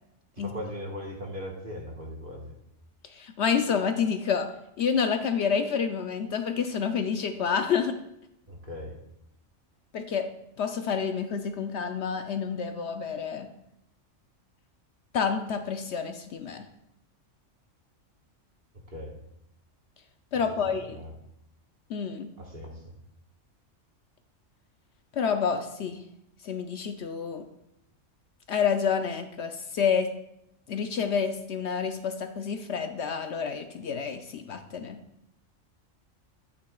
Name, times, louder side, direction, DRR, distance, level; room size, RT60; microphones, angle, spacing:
voice 1, 0.4-2.5 8.5-8.9 18.9-19.2 20.9-21.1 22.4-22.9, equal, 45° right, 0 dB, 1.5 m, -39 dB
voice 2, 3.1-4.5 4.8-7.9 9.9-10.3 10.6-13.5 15.1-16.7 20.3-21.0 21.9-22.3 25.1-26.0 26.4-27.4 28.5-30.1 30.7-35.0, left 6 dB, 65° left, 7 dB, 0.8 m, -28 dB
10.5 x 8.7 x 2.3 m, 0.81 s
omnidirectional pair, 1.3 m